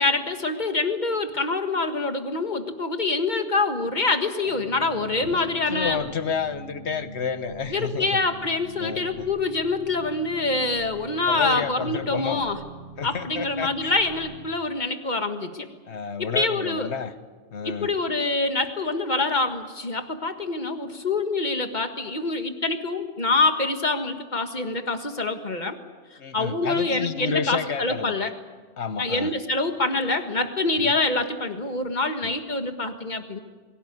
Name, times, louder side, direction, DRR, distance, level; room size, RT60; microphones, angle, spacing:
voice 1, 0.0-6.0 7.7-12.6 13.0-15.7 16.3-16.9 17.8-25.8 26.3-28.3 29.0-33.4, left 3 dB, 35° left, 7 dB, 1.7 m, -25 dB
sound 1, 4.4-14.5, right 3 dB, 45° right, 2.9 m, -43 dB
voice 2, 5.2-8.2 8.8-9.3 11.3-12.4 13.0-13.9 15.9-17.1 17.5-17.9 26.2-28.2 28.8-29.3 30.8-30.9 32.2-32.3, left 6 dB, 60° left, 12 dB, 1.3 m, -30 dB
23.5 x 17.5 x 9.5 m, 1.4 s
omnidirectional pair, 1.3 m